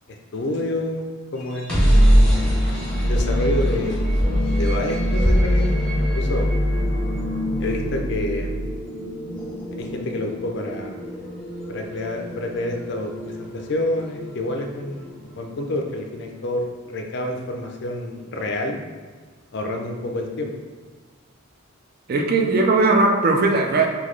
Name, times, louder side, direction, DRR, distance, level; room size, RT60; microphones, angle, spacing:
voice 1, 0.1-1.0 1.3-2.2 3.0-4.2 4.5-5.7 6.1-6.5 7.6-8.6 9.8-11.0 11.7-18.8 19.5-20.5, left 1 dB, 55° left, 3 dB, 0.4 m, -28 dB
sound 1, 1.4-15.3, equal, 5° left, 0.7 m, -22 dB
voice 2, 22.1-23.9, right 3 dB, 45° right, 3 dB, 0.4 m, -18 dB
3.8 x 2.3 x 3.1 m, 1.5 s
head